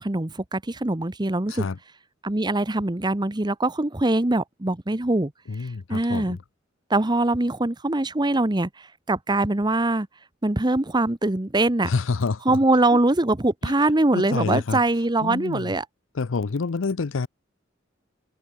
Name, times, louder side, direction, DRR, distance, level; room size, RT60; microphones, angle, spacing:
voice 1, 0.0-1.7 2.2-5.3 5.9-6.4 6.9-10.1 10.4-11.9 12.4-15.8, right 2 dB, 20° right, 1.0 m, -23 dB
voice 2, 5.5-6.4 11.8-12.6 12.9-13.0 13.6-13.7 14.1-14.8 15.2-15.7 16.1-17.3, left 4 dB, 80° left, 0.6 m, -27 dB
head